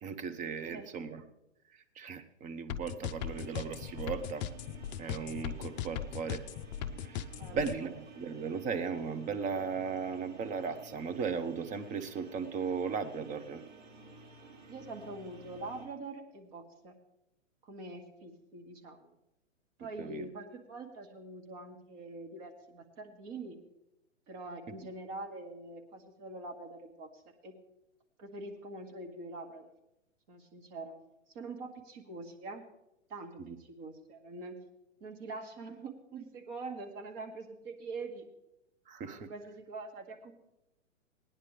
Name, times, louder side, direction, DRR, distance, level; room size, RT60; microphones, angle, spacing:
voice 1, 0.0-1.2 1.7-4.4 5.0-6.4 7.0-13.6 20.0-20.2 33.4-33.6 38.9-39.3, right 6 dB, 20° right, 9 dB, 0.7 m, -37 dB
sound 1, 2.7-7.7, left 11 dB, 35° left, 0.5 m, -37 dB
sound 2, 3.2-15.9, right 2 dB, 60° right, 4.0 m, -53 dB
voice 2, 7.4-7.9 14.7-16.9 17.6-19.1 19.8-23.6 24.3-27.5 28.2-29.7 30.3-30.9 31.3-32.6 33.1-34.6 35.0-38.3 39.1-40.3, right 3 dB, 40° right, 3 dB, 2.0 m, -44 dB
19.0 x 10.0 x 3.3 m, 0.87 s
hypercardioid pair, 120°, 38 cm